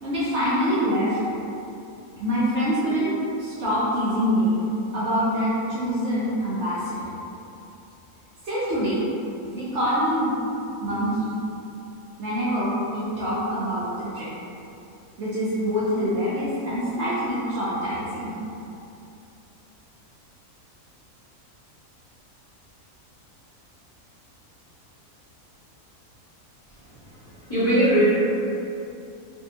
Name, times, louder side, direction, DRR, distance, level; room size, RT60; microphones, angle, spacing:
voice 1, 0.0-1.2 2.2-3.1 3.4-4.6 4.9-7.0 8.4-9.0 9.5-11.3 12.2-14.3 15.2-18.3, equal, 60° right, -10 dB, 0.9 m, -25 dB
voice 2, 27.0-28.1, right 1 dB, 25° left, -14 dB, 1.1 m, -21 dB
3.5 x 2.5 x 2.7 m, 2.7 s
omnidirectional pair, 1.5 m